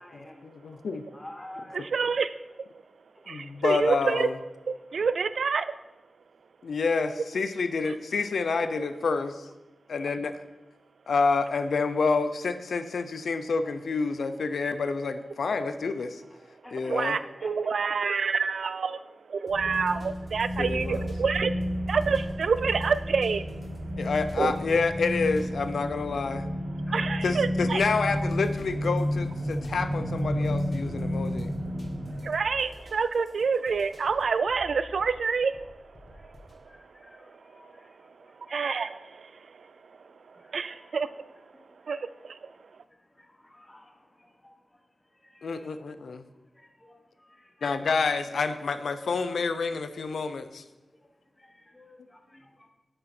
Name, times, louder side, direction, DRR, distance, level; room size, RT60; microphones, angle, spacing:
voice 1, 0.0-0.5 1.1-2.1 3.1-3.2 4.9-5.1 13.5-13.6 16.3-17.1 17.4-17.9 26.7-27.6 32.1-32.3 36.1-38.8 39.3-41.0 41.5-42.3 42.5-47.9 50.7-52.7, left 1 dB, 15° left, 3 dB, 1.4 m, -52 dB
voice 2, 1.9-2.4 3.3-4.3 4.7-5.7 7.2-7.3 16.9-23.6 23.9-24.0 24.4-24.6 26.4-26.5 26.8-27.8 31.1-36.7 37.0-37.7 38.0-41.2 41.9-42.5, right 5 dB, 75° right, 14 dB, 0.4 m, -29 dB
voice 3, 3.3-4.3 6.6-9.3 9.9-10.3 11.1-16.2 16.7-17.2 20.6-21.1 24.0-26.5 27.2-31.5 45.4-46.2 47.6-50.6, left 4 dB, 80° left, 10 dB, 0.6 m, -28 dB
sound 1, 19.5-36.6, left 1 dB, 45° left, 1.7 m, -51 dB
sound 2, 19.5-32.2, equal, 15° right, 1.3 m, -31 dB
8.8 x 7.8 x 4.4 m, 1.0 s
wide cardioid pair, 115°, 0 cm